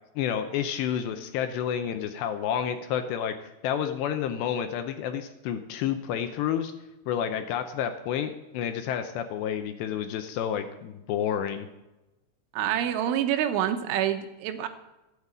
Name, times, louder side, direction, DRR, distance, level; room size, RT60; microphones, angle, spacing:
voice 1, 0.2-3.3 3.6-6.7 7.1-11.7, left 9 dB, 80° left, 7 dB, 2.7 m, -30 dB
voice 2, 12.5-14.7, right 10 dB, 85° right, 7 dB, 3.5 m, -27 dB
14.5 x 8.3 x 8.6 m, 1.0 s
omnidirectional pair, 5.5 m